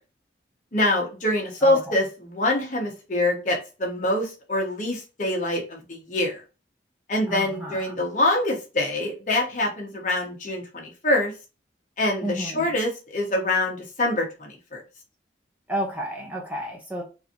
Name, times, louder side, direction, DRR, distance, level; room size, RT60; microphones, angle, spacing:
voice 1, 0.7-6.4 7.1-11.3 12.0-14.8, left 1 dB, 45° left, 1.2 m, -25 dB
voice 2, 7.3-7.9 12.2-12.7 15.7-17.0, equal, 10° right, 0.8 m, -31 dB
3.9 x 2.7 x 2.9 m
head